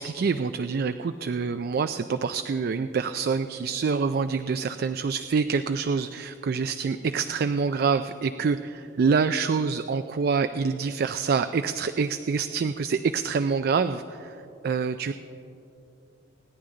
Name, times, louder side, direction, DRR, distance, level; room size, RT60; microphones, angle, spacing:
voice 1, 0.0-14.4 14.6-15.1, right 5 dB, 55° right, 10 dB, 0.4 m, -26 dB
27.0 x 9.8 x 3.8 m, 2.7 s
head